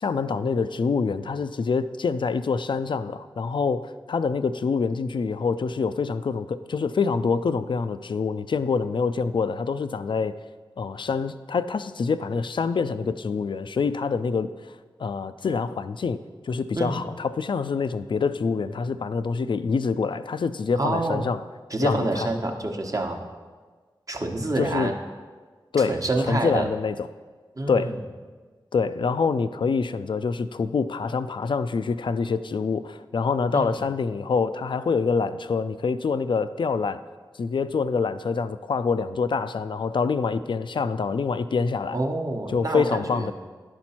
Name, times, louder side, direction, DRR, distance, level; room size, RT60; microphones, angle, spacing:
voice 1, 0.0-10.4 10.8-14.5 15.0-16.2 16.4-21.4 21.8-22.3 24.6-24.9 25.7-26.0 26.3-27.0 27.7-28.0 28.7-37.0 37.4-42.0 42.5-43.3, left 5 dB, 65° left, 13 dB, 0.4 m, -26 dB
voice 2, 20.8-21.3 21.7-23.2 24.1-24.9 25.8-26.7 27.6-28.0 33.5-33.7 41.9-43.3, right 2 dB, 40° right, 3 dB, 1.0 m, -27 dB
11.0 x 4.4 x 4.3 m, 1.5 s
cardioid pair, 40°, 9 cm